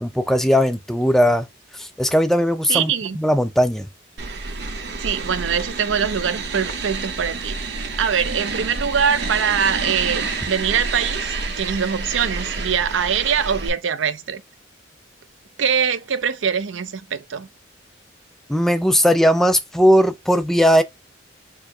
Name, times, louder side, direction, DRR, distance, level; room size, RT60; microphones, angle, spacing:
voice 1, 0.0-1.5 1.7-3.9 18.5-20.8, equal, ahead, 0.4 m, -18 dB
voice 2, 2.7-3.2 5.0-14.4 15.6-17.5, right 7 dB, 85° right, 0.5 m, -23 dB
sound 1, 4.2-13.7, right 4 dB, 60° right, 0.9 m, -28 dB
4.7 x 2.2 x 4.7 m
head